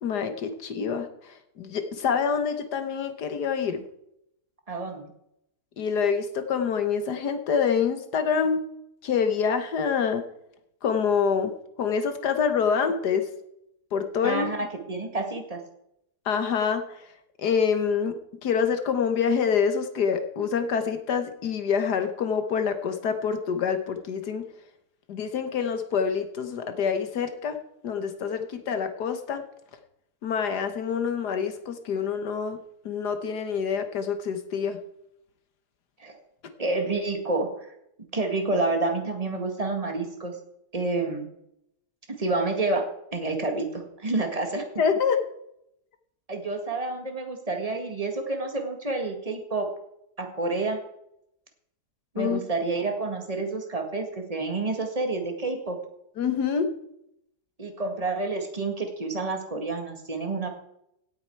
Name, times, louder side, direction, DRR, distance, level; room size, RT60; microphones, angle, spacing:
voice 1, 0.0-3.8 5.8-8.6 9.0-10.2 10.8-11.5 11.8-13.3 13.9-14.5 16.3-16.8 17.4-18.1 18.4-24.4 25.1-27.6 27.8-29.4 30.2-32.6 32.9-34.8 44.8-45.2 52.2-52.4 56.2-56.7, left 6 dB, 80° left, 8 dB, 1.8 m, -26 dB
voice 2, 4.7-5.1 14.2-15.6 36.0-36.1 36.6-37.5 38.1-40.3 40.7-41.3 42.1-42.9 43.1-44.6 46.3-49.7 50.2-50.8 52.1-55.8 57.6-60.5, right 3 dB, 20° right, 4 dB, 1.9 m, -29 dB
17.5 x 8.8 x 4.7 m, 0.80 s
omnidirectional pair, 1.7 m